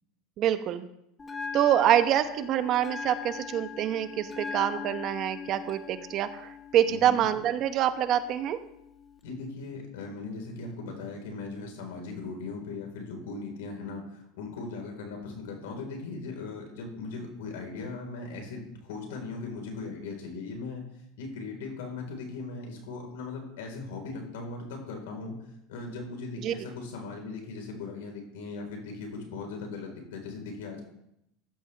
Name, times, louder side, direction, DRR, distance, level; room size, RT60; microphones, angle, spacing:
voice 1, 0.4-0.9 1.5-8.6 26.4-26.7, right 10 dB, 45° right, 10 dB, 1.0 m, -26 dB
Bell, 1.2-9.2, left 6 dB, 20° left, 1.8 m, -41 dB
voice 2, 6.9-7.2 9.2-20.8 21.2-25.4 25.7-30.8, left 3 dB, 85° left, 2 dB, 4.3 m, -39 dB
15.5 x 12.5 x 3.5 m, 0.80 s
supercardioid pair, 125°, 0 cm